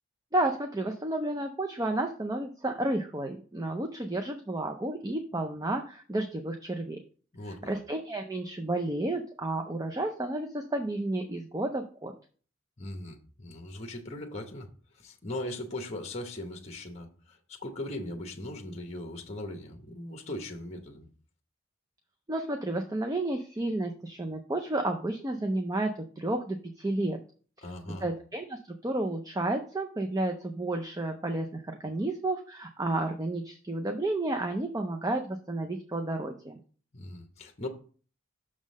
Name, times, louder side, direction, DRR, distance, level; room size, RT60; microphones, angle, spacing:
voice 1, 0.3-7.0 7.6-12.1 22.3-27.2 27.6-27.7 28.0-36.6, right 2 dB, 15° right, 5 dB, 0.4 m, -31 dB
voice 2, 7.3-7.7 12.8-14.7 14.9-21.1 27.6-28.1 36.9-37.7, left 1 dB, 30° left, 4 dB, 0.9 m, -39 dB
6.4 x 3.7 x 6.1 m, 0.41 s
head